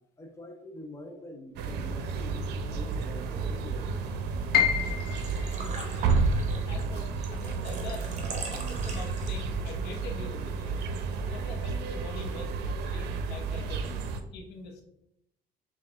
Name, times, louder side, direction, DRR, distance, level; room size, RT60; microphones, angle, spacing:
voice 1, 0.2-4.1, left 1 dB, 15° left, 3 dB, 0.7 m, -45 dB
sound 1, 1.6-14.2, right 4 dB, 80° right, 0.5 m, -31 dB
Piano, 4.5-10.5 10.8-11.9 12.4-12.5 13.2-13.5, left 8 dB, 65° left, 0.9 m, -33 dB
Engine / Trickle dribble / Fill (with liquid), 4.8-9.6, right 4 dB, 45° right, 0.9 m, -42 dB
voice 2, 5.6-6.2 6.7-10.8 11.3-14.1 14.3-14.8, left 3 dB, 90° left, 2 dB, 0.9 m, -44 dB
5.9 x 2.4 x 3.4 m, 0.78 s
cardioid pair, 110°, 17 cm